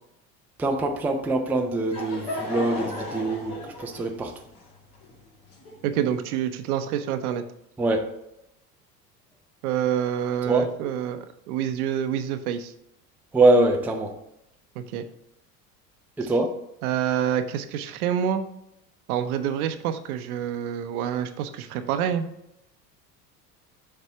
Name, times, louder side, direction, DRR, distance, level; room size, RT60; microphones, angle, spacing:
voice 1, 0.6-4.3 7.8-8.1 10.5-10.7 13.3-14.1 16.2-16.5, right 2 dB, 5° right, 0.5 m, -23 dB
Laughter / Crowd, 1.5-6.2, left 1 dB, 50° left, 2.5 m, -36 dB
voice 2, 5.8-7.4 9.6-11.2 11.5-12.7 14.8-15.0 16.2-16.3 16.8-18.4 19.1-22.3, right 9 dB, 60° right, 0.8 m, -27 dB
6.7 x 4.3 x 4.5 m
figure-of-eight pair, 75°, 49 cm